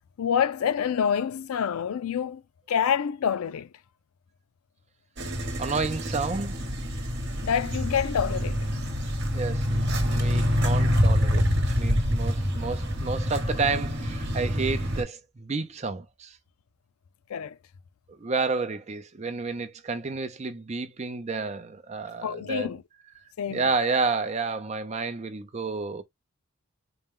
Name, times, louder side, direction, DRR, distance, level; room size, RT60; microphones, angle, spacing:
voice 1, 0.2-2.4 2.7-3.7 7.4-8.6 17.3-17.6 22.2-22.8 23.4-23.7, left 8 dB, 80° left, 0.4 m, -27 dB
sound 1, 5.2-15.0, equal, 50° right, 1.1 m, -26 dB
voice 2, 5.6-6.7 9.3-11.5 11.8-16.4 18.2-22.7 23.5-26.0, right 4 dB, 30° right, 0.5 m, -30 dB
sound 2, 11.9-14.9, right 1 dB, 15° right, 1.1 m, -40 dB
4.2 x 2.2 x 3.5 m
head